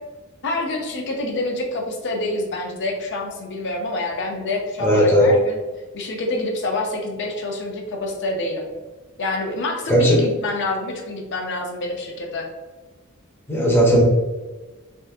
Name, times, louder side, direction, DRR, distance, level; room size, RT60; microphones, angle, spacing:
voice 1, 0.4-5.6 5.9-8.7 9.2-12.5, left 2 dB, 55° left, 2 dB, 0.6 m, -27 dB
voice 2, 4.8-5.3 9.9-10.2 13.5-14.0, equal, 10° left, -3 dB, 0.6 m, -16 dB
3.5 x 2.4 x 2.6 m, 1.2 s
head